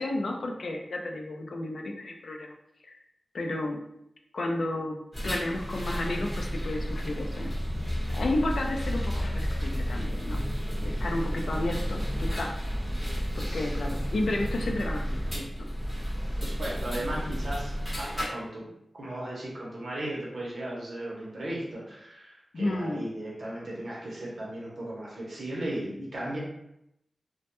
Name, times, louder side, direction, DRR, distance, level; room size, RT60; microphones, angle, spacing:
voice 1, 0.0-2.5 2.8-3.0 3.3-3.8 4.3-7.5 8.1-10.4 10.8-12.5 13.4-15.7 17.1-17.4 22.5-23.1, left 2 dB, 75° left, 2 dB, 0.3 m, -32 dB
sound 1, 5.1-18.3, equal, 15° left, 0.9 m, -31 dB
voice 2, 16.4-26.4, right 1 dB, 65° right, -4 dB, 0.6 m, -36 dB
2.1 x 2.1 x 2.8 m, 0.80 s
wide cardioid pair, 115°, 0 cm